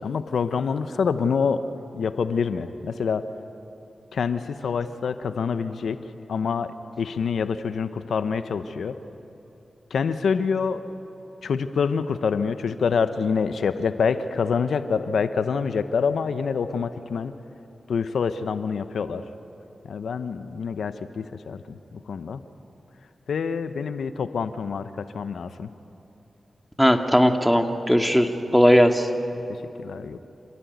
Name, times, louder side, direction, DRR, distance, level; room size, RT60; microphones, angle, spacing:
voice 1, 0.0-1.6 1.9-3.3 4.1-6.0 6.3-9.0 9.9-10.8 11.4-17.3 17.9-19.2 19.8-22.4 23.3-25.7 29.5-30.2, left 6 dB, 85° left, 11 dB, 0.8 m, -26 dB
voice 2, 26.8-29.1, equal, ahead, 5 dB, 1.9 m, -18 dB
28.0 x 15.5 x 9.4 m, 2.9 s
cardioid pair, 50°, 0 cm